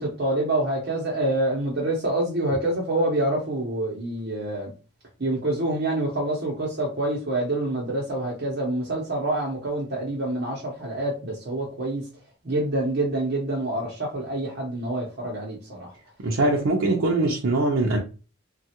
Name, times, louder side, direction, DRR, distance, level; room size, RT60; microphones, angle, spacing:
voice 1, 0.0-4.7 5.2-12.1 12.4-15.9, right 1 dB, 55° right, 0.9 m, -26 dB
voice 2, 16.2-18.0, right 2 dB, 80° right, 0.6 m, -22 dB
3.1 x 2.4 x 2.9 m
head